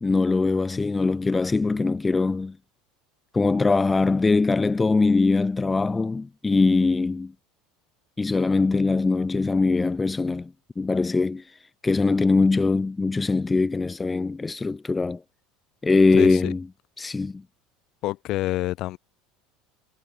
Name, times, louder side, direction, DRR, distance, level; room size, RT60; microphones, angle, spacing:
voice 1, 0.0-2.6 3.3-7.3 8.2-11.4 11.8-15.2 15.8-16.7 17.0-17.4, left 3 dB, 15° left, 0.4 m, -22 dB
voice 2, 16.1-16.5 18.0-19.0, left 16 dB, 50° left, 0.7 m, -27 dB
figure-of-eight pair, 70°, 0 cm